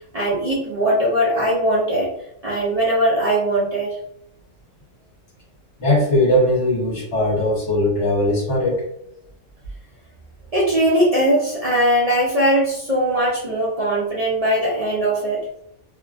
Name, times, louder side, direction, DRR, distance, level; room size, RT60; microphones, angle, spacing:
voice 1, 0.1-2.1 2.4-3.9 10.5-15.5, right 1 dB, 80° right, -6 dB, 0.3 m, -20 dB
voice 2, 5.8-8.8, left 1 dB, 50° left, -5 dB, 1.1 m, -19 dB
2.6 x 2.5 x 2.3 m, 0.72 s
omnidirectional pair, 1.5 m